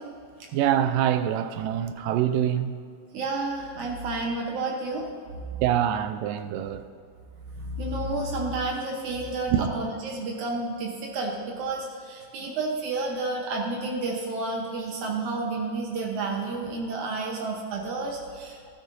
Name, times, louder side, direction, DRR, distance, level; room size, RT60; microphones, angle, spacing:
voice 1, 0.5-2.9 5.6-6.9 9.5-9.7, right 10 dB, 90° right, 2.2 m, -25 dB
voice 2, 3.1-5.1 5.4-5.6 7.5-18.7, right 3 dB, 70° right, 2.3 m, -30 dB
13.0 x 12.5 x 2.7 m
omnidirectional pair, 3.8 m